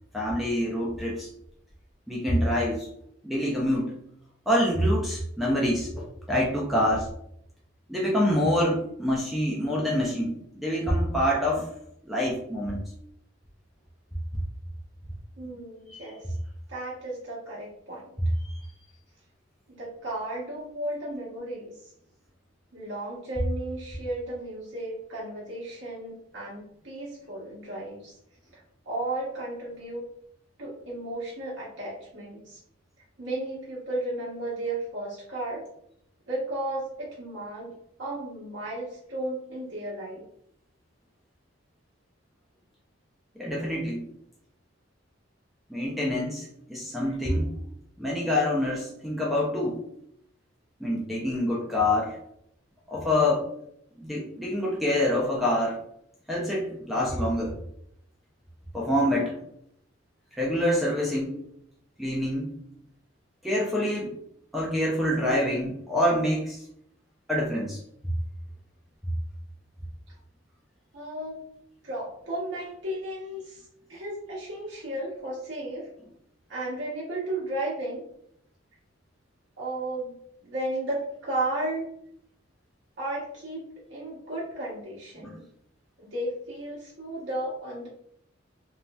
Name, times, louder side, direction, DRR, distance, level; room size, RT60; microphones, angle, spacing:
voice 1, 0.1-1.3 2.1-2.9 3.2-3.9 4.5-7.1 7.9-11.7 12.1-12.8 15.9-16.0 18.4-18.5 43.4-44.1 45.7-47.5 48.0-49.8 50.8-52.2 52.9-53.5 54.0-55.8 56.3-57.5 58.7-59.4 60.3-61.3 62.0-62.5 63.4-64.1 64.5-66.6 67.3-67.8 85.2-85.3, left 1 dB, ahead, -4 dB, 0.4 m, -26 dB
voice 2, 15.4-16.3 16.7-18.1 19.7-21.7 22.7-28.1 28.9-30.0 30.6-32.6 33.2-35.6 36.3-37.7 38.0-40.2 47.0-47.6 70.9-71.4 71.8-75.9 76.5-78.0 79.6-80.1 80.4-81.9 83.0-83.6 83.9-85.4 86.0-87.9, right 1 dB, 65° right, -6 dB, 0.9 m, -34 dB
3.0 x 2.6 x 2.2 m, 0.72 s
head